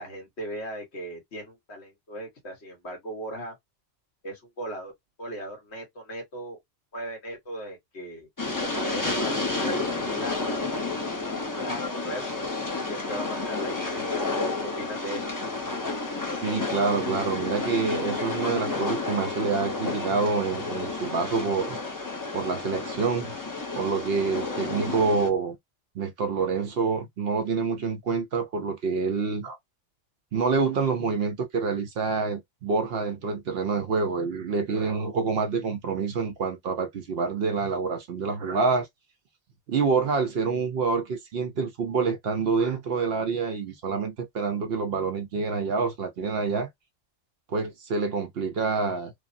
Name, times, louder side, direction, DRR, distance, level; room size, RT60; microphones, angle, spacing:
voice 1, 0.0-3.6 4.2-4.9 5.2-6.6 6.9-8.3 8.6-10.7 11.1-12.3 12.9-14.4 14.8-15.3, right 1 dB, 65° left, 1.6 m, -38 dB
Train, 8.4-25.3, left 3 dB, 20° left, 0.6 m, -31 dB
voice 2, 16.4-21.8 22.3-23.3 23.8-25.6 25.9-29.6 30.3-38.9 39.7-46.7 47.5-49.1, right 4 dB, 65° right, 0.8 m, -27 dB
3.3 x 2.0 x 2.6 m
omnidirectional pair, 1.2 m